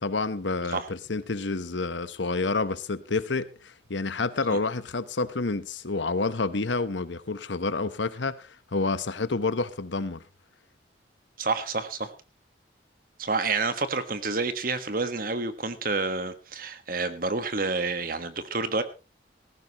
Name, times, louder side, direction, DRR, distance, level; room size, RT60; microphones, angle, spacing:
voice 1, 0.0-10.2, left 3 dB, 90° left, 1.0 m, -29 dB
voice 2, 11.4-12.1 13.2-18.8, right 3 dB, 50° right, 1.4 m, -29 dB
18.0 x 14.5 x 3.0 m
head